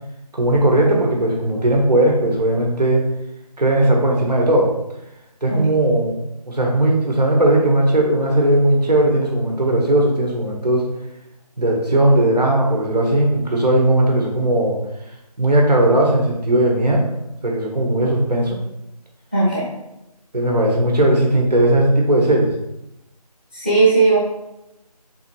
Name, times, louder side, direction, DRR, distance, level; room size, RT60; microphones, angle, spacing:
voice 1, 0.3-3.0 3.6-4.7 5.4-6.2 6.5-10.9 11.6-14.8 15.4-17.0 17.4-18.6 20.3-22.5, right 1 dB, 80° right, -1 dB, 1.3 m, -17 dB
voice 2, 19.3-19.6 23.5-24.2, right 3 dB, 15° right, -8 dB, 0.8 m, -16 dB
4.2 x 3.6 x 3.1 m, 0.89 s
figure-of-eight pair, 175°, 20 cm